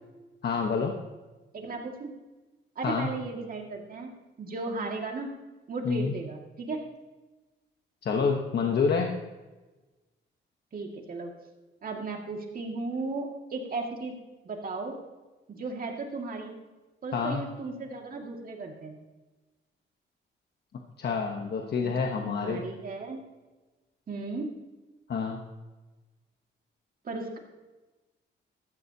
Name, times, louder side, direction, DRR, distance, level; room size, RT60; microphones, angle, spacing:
voice 1, 0.4-0.9 2.8-3.1 5.8-6.1 8.0-9.1 17.1-17.4 21.0-22.6 25.1-25.4, left 5 dB, 55° left, 2 dB, 1.1 m, -27 dB
voice 2, 1.5-2.1 2.8-4.1 4.4-5.3 5.7-6.8 10.7-11.3 11.8-14.1 14.4-15.0 15.5-16.5 17.0-19.0 21.8-21.9 22.3-23.2 24.1-24.5 27.0-27.4, right 3 dB, 45° right, 1 dB, 2.2 m, -35 dB
15.0 x 14.0 x 2.9 m, 1.2 s
cardioid pair, 130°, 20 cm